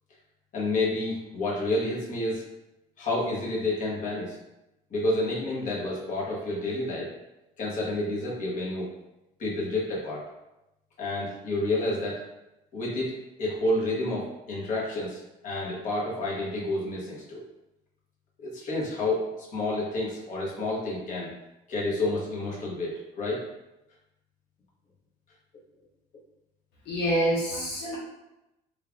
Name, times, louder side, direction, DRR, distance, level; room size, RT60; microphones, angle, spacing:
voice 1, 0.5-2.4 3.0-4.4 4.9-7.1 7.6-8.9 9.4-10.2 11.0-12.2 12.7-17.4 18.4-21.3 21.7-23.4, left 2 dB, 50° left, -5 dB, 1.2 m, -29 dB
voice 2, 26.9-28.0, equal, 80° left, -6 dB, 0.9 m, -26 dB
3.3 x 2.4 x 3.5 m, 0.93 s
cardioid pair, 110°, 17 cm